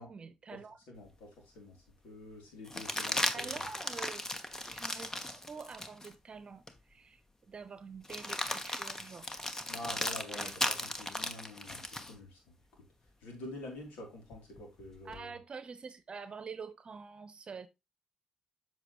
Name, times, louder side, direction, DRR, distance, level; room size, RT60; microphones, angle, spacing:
voice 1, 0.0-0.8 3.3-4.3 4.7-6.6 6.9-9.3 10.3-10.5 15.0-17.7, right 5 dB, 45° right, 0.9 m, -46 dB
voice 2, 0.9-3.5 9.7-12.9 13.2-15.4, left 1 dB, 85° left, 3.1 m, -47 dB
sound 1, 1.1-1.2 2.7-6.1 6.7-6.8 8.0-12.1 14.3-15.2, left 1 dB, 20° left, 1.2 m, -37 dB
7.7 x 5.9 x 3.1 m
supercardioid pair, 55°, 2 cm